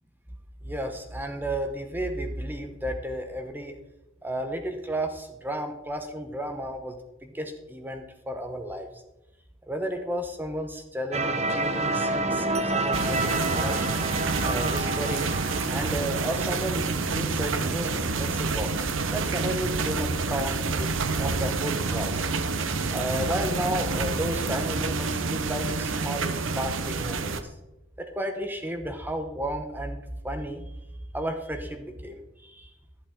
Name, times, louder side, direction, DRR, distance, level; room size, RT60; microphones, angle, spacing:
voice 1, 0.6-3.7 4.2-8.9 9.7-13.9 14.4-15.3 15.7-20.5 20.8-20.9 21.2-22.2 22.8-27.5 28.0-30.6 31.1-32.7, right 1 dB, 10° right, 5 dB, 0.9 m, -33 dB
sound 1, 11.1-17.9, right 2 dB, 35° right, 1.0 m, -29 dB
sound 2, 12.9-27.4, right 4 dB, 70° right, 0.8 m, -28 dB
11.5 x 10.5 x 3.7 m, 0.96 s
head